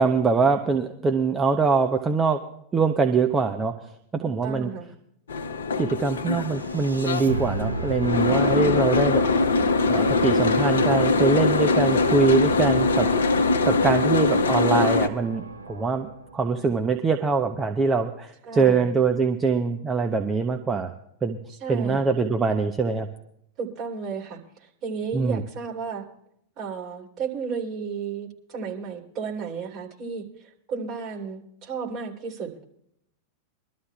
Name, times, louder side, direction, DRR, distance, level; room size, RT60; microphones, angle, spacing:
voice 1, 0.0-2.4 2.7-3.8 4.1-4.7 5.8-9.2 9.9-13.2 13.6-20.9 21.2-21.4 21.7-23.1 25.1-25.4, right 4 dB, 20° right, 5 dB, 0.8 m, -23 dB
voice 2, 4.2-4.9 8.5-8.8 18.4-18.9 21.6-22.1 23.6-26.1 26.6-30.2 30.7-32.5, right 6 dB, 40° right, -1 dB, 3.0 m, -33 dB
Boat Water vehicle, 5.3-15.1, left 3 dB, 70° left, 0.9 m, -22 dB
sound 1, 6.3-16.5, right 2 dB, 90° right, 0.7 m, -33 dB
23.5 x 13.0 x 2.3 m, 0.72 s
figure-of-eight pair, 90°, 0 cm